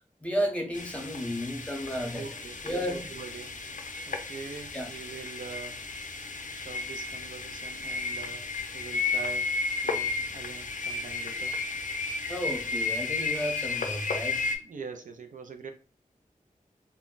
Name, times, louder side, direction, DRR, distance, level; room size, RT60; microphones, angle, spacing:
voice 1, 0.2-2.3 2.6-3.1 4.7-4.9 12.3-14.4, equal, 10° left, 2 dB, 0.8 m, -32 dB
sound 1, 0.7-14.6, left 4 dB, 65° left, 0.5 m, -33 dB
voice 2, 2.1-3.6 4.1-5.8 6.5-9.6 9.8-11.6 14.5-15.7, right 5 dB, 65° right, 6 dB, 0.4 m, -43 dB
2.2 x 2.1 x 3.7 m, 0.38 s
wide cardioid pair, 55°, 14 cm